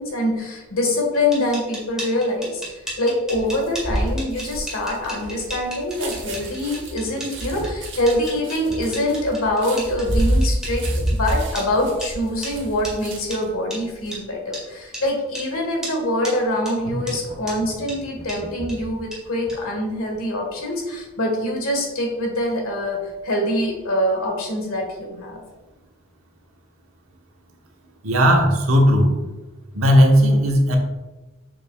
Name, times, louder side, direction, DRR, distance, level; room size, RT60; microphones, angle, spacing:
voice 1, 0.0-23.0 23.2-25.4, left 1 dB, 80° left, 1 dB, 1.6 m, -24 dB
sound 1, 1.1-11.7 12.0-12.1 12.4-12.5 12.8-12.9 13.3-13.4 13.7-13.8 14.1-14.2 14.5-14.6 14.9-15.0 15.3-15.5 15.8-16.0 16.2-16.3 16.7-16.8 17.1-17.2 17.5-17.6 17.9-18.0 18.3-18.4 18.7-18.8 19.1-19.2 19.5-19.6, right 1 dB, 5° right, 1.9 m, -34 dB
sound 2, 3.3-13.5 13.9-14.2, right 1 dB, 55° right, 1.2 m, -27 dB
sound 3, 16.8-19.0, equal, 30° left, 1.2 m, -34 dB
voice 2, 28.0-29.1 29.7-30.8, equal, 75° right, 1 dB, 1.1 m, -15 dB
7.0 x 5.7 x 2.3 m, 1.2 s
head